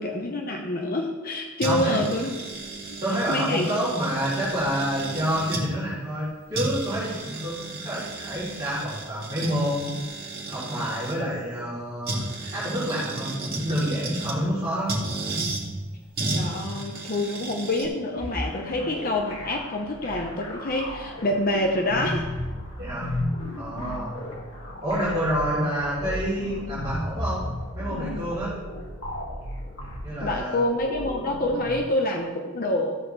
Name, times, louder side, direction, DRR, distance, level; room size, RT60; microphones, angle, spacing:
voice 1, 0.0-2.5 3.3-3.6 16.3-22.2 30.2-33.0, left 1 dB, 40° left, 2 dB, 0.9 m, -27 dB
voice 2, 1.6-2.0 3.0-10.0 10.5-12.2 12.5-13.3 13.6-15.0 22.8-23.1 23.5-24.2 24.8-27.4 27.7-28.6 30.0-30.6, equal, 15° right, -13 dB, 3.8 m, -28 dB
sound 1, 1.6-5.7 6.2-6.3 6.5-11.2 12.1-14.4 14.9-15.6 16.2-17.9, right 2 dB, 45° right, 2.2 m, -33 dB
sound 2, 18.2-31.8, left 1 dB, 60° left, 2.6 m, -34 dB
14.0 x 8.4 x 3.4 m, 1.3 s
head